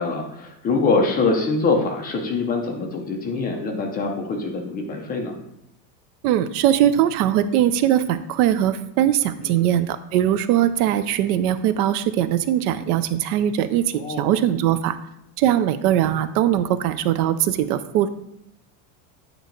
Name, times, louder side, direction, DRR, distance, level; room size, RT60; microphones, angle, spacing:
voice 1, 0.0-5.3 9.4-9.6 13.9-14.3, left 3 dB, 20° left, 1 dB, 0.6 m, -24 dB
voice 2, 6.2-15.0 15.4-18.1, right 11 dB, 65° right, 13 dB, 0.6 m, -21 dB
8.9 x 3.0 x 5.1 m, 0.81 s
supercardioid pair, 165°, 50 cm